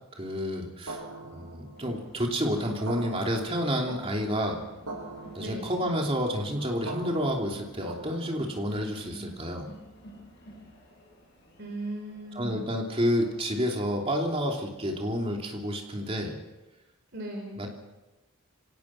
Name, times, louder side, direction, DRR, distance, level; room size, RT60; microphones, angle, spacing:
voice 1, 0.2-1.0 1.3-4.6 5.3-9.7 12.3-16.4 17.6-17.7, equal, 25° right, 1 dB, 3.1 m, -29 dB
sound 1, 0.9-8.7, right 3 dB, 80° right, 6.0 m, -43 dB
Crowd, 1.7-15.3, equal, 50° left, 7.4 m, -52 dB
voice 2, 5.4-5.8 8.7-9.4 11.6-12.6 17.1-17.7, right 1 dB, 50° right, 1 dB, 4.0 m, -38 dB
25.5 x 17.5 x 6.0 m, 1.1 s
head